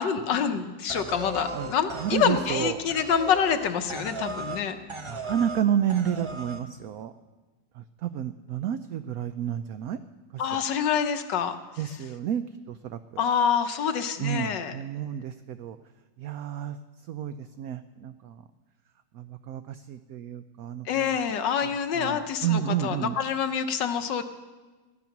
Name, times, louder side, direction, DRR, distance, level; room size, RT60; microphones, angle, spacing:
voice 1, 0.0-4.8 10.4-11.6 13.2-14.7 20.9-24.2, left 7 dB, 75° left, 9 dB, 1.6 m, -26 dB
sound 1, 0.9-4.6 4.9-5.6 5.9-6.6, right 2 dB, 25° right, 0.7 m, -37 dB
voice 2, 1.5-2.8 5.1-7.1 7.7-10.0 10.3-10.6 11.8-13.2 14.2-15.8 16.2-18.4 19.1-21.2 21.6-23.2, right 9 dB, 65° right, 10 dB, 0.9 m, -31 dB
17.0 x 12.5 x 5.9 m, 1.3 s
omnidirectional pair, 2.0 m